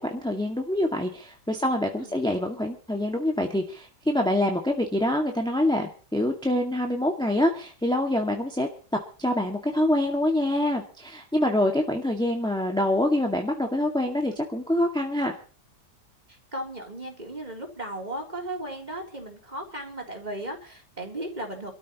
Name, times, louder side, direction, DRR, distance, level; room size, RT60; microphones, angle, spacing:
voice 1, 0.0-8.7 9.2-15.3, left 1 dB, 5° left, 1 dB, 2.0 m, -25 dB
voice 2, 16.3-21.7, right 1 dB, 25° right, 1 dB, 3.8 m, -36 dB
27.5 x 13.5 x 3.1 m, 0.39 s
omnidirectional pair, 1.8 m